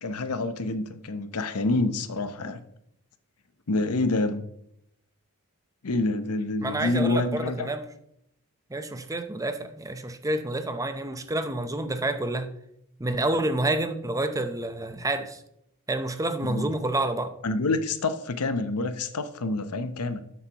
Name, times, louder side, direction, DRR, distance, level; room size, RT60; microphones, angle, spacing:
voice 1, 0.0-2.6 3.7-4.4 5.8-7.7 16.4-16.7 17.4-20.2, left 2 dB, 85° left, 0.8 m, -27 dB
voice 2, 6.6-7.8 8.7-12.5 13.0-15.4 15.9-17.3, right 2 dB, 15° right, 0.7 m, -28 dB
12.0 x 8.0 x 3.0 m
head